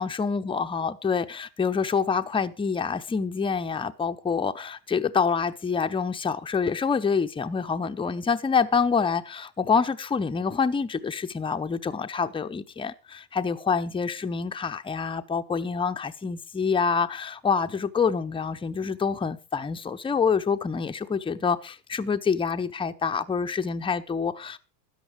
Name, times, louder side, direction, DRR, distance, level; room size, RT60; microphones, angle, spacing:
voice 1, 0.0-24.6, left 5 dB, 10° left, 0.8 m, -26 dB
13.5 x 9.5 x 4.9 m
supercardioid pair, 105°, 49 cm